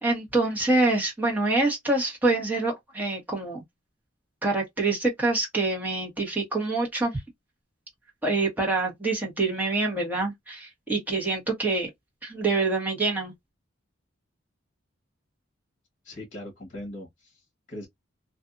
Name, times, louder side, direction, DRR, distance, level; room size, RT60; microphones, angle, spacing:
voice 1, 0.0-3.6 4.4-7.2 8.2-11.9 12.2-13.3, right 2 dB, 10° right, 1.1 m, -26 dB
voice 2, 16.0-17.9, left 1 dB, 40° left, 1.1 m, -40 dB
2.6 x 2.4 x 2.4 m
head